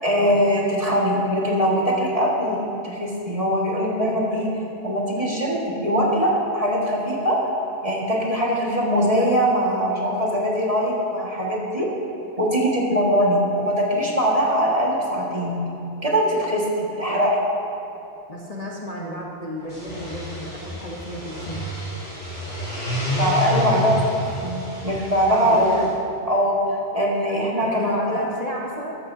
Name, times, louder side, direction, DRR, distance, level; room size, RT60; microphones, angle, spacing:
voice 1, 0.0-4.5 4.8-7.4 7.8-11.9 12.4-15.6 16.0-17.4 23.2-23.9 24.3-25.8 26.3-28.3, equal, 30° right, -4 dB, 1.9 m, -22 dB
voice 2, 18.3-21.7 23.6-23.9 25.4-25.9 27.6-29.0, left 1 dB, 35° left, -3 dB, 1.1 m, -33 dB
sound 1, 19.6-25.9, equal, 90° left, 3.6 m, -29 dB
14.0 x 13.0 x 2.7 m, 3.0 s
omnidirectional pair, 1.2 m